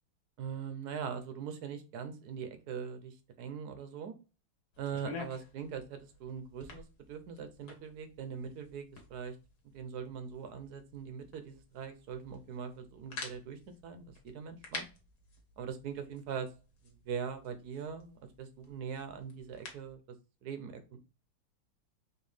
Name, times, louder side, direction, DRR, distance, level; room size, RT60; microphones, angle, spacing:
voice 1, 0.4-4.1 4.8-9.4 9.7-14.8 15.6-16.5 16.8-20.0 20.4-21.0, right 7 dB, 70° right, 8 dB, 0.9 m, -41 dB
sound 1, 4.7-20.0, left 4 dB, 55° left, 1.5 m, -50 dB
4.5 x 2.8 x 3.2 m, 0.33 s
omnidirectional pair, 2.2 m